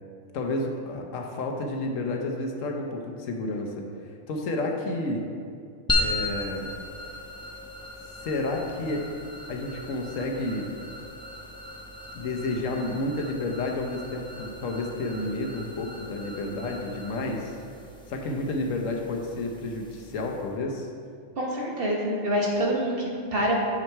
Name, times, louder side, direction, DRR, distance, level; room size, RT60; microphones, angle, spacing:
voice 1, 0.3-3.7 4.1-5.2 6.0-6.7 8.2-10.7 12.1-17.5 18.1-20.9, left 2 dB, 90° left, 2 dB, 1.2 m, -31 dB
sound 1, 5.9-20.6, left 2 dB, 5° left, 0.6 m, -36 dB
voice 2, 21.4-23.6, equal, 50° right, -2 dB, 1.3 m, -26 dB
6.3 x 6.1 x 4.5 m, 2.3 s
omnidirectional pair, 1.3 m